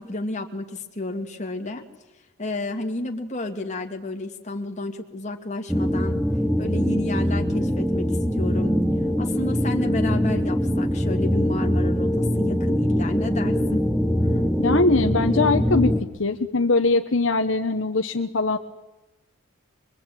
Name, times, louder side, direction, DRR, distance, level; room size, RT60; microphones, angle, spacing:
voice 1, 0.0-1.8 2.4-6.2 6.6-8.8 9.2-13.9 14.2-14.5, left 2 dB, 35° left, 3 dB, 2.4 m, -31 dB
sound 1, 5.7-16.0, equal, ahead, 1.1 m, -23 dB
voice 2, 14.6-18.6, left 3 dB, 60° left, 6 dB, 1.2 m, -22 dB
24.0 x 23.5 x 9.2 m, 1.0 s
head